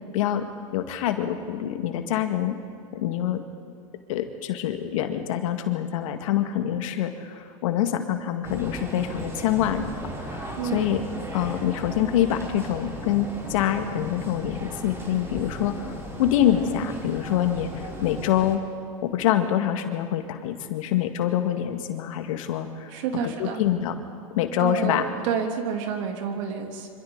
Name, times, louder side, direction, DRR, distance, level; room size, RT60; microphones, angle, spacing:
voice 1, 0.1-0.5 0.7-2.6 2.9-3.4 4.1-9.9 10.2-11.0 11.3-18.6 19.0-22.9 23.2-24.0 24.4-25.0, left 11 dB, 65° left, 7 dB, 1.9 m, -25 dB
Oxford covered market ambience, 8.4-18.6, equal, 15° right, 4.7 m, -36 dB
voice 2, 10.6-10.9 22.9-23.6 24.6-26.9, right 7 dB, 60° right, 3 dB, 3.3 m, -29 dB
26.0 x 26.0 x 4.0 m, 2.2 s
hypercardioid pair, 95°, 18 cm